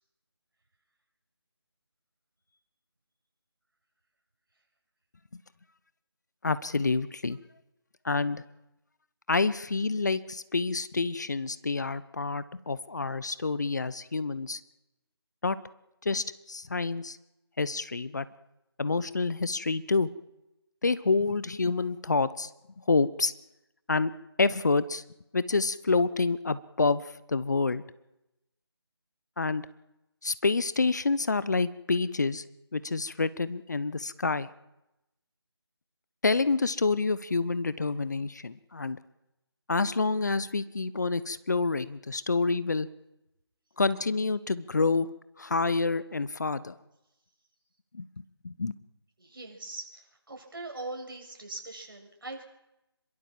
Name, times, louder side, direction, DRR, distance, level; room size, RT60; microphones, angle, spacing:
voice 1, 6.4-7.4 8.0-8.4 9.3-14.6 15.4-15.6 16.0-17.2 17.6-18.3 18.8-20.1 20.8-22.5 22.9-23.3 23.9-24.1 24.4-25.0 25.3-27.8 29.4-29.6 30.2-32.4 32.7-34.5 36.2-39.0 39.7-42.9 43.8-45.1 45.4-46.7 47.9-48.1 48.4-48.7, left 3 dB, 40° left, 16 dB, 1.0 m, -28 dB
voice 2, 49.2-52.4, right 2 dB, 55° right, 2 dB, 7.6 m, -41 dB
26.5 x 23.0 x 7.5 m, 0.91 s
figure-of-eight pair, 160°, 14 cm